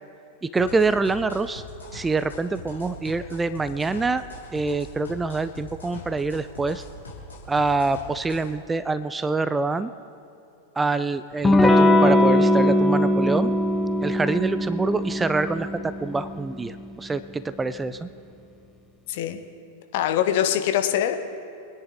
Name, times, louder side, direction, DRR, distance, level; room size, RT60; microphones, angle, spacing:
voice 1, 0.4-1.6 1.9-4.2 4.5-6.8 7.5-9.9 10.8-13.5 14.0-18.1, right 3 dB, 10° right, 14 dB, 0.4 m, -25 dB
sound 1, 0.6-8.5, left 1 dB, 75° left, 2.7 m, -42 dB
Electric guitar / Strum, 11.4-16.8, left 1 dB, 10° left, 1.1 m, -20 dB
voice 2, 19.1-19.4 19.9-21.2, left 11 dB, 50° left, 7 dB, 1.0 m, -23 dB
25.0 x 10.0 x 3.9 m, 2.7 s
figure-of-eight pair, 90°, 0 cm